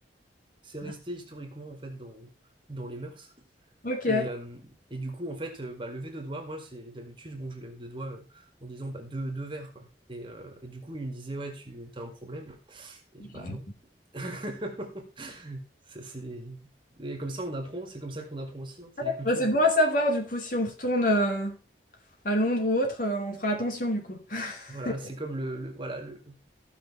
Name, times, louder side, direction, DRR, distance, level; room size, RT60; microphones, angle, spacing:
voice 1, 0.6-2.3 2.7-3.3 4.1-13.7 14.1-19.5 24.7-26.5, right 1 dB, 30° right, 2.0 m, -38 dB
voice 2, 3.8-4.3 13.2-13.6 19.0-21.6 22.2-24.9, left 1 dB, 50° left, 2.6 m, -26 dB
15.0 x 5.9 x 4.2 m
head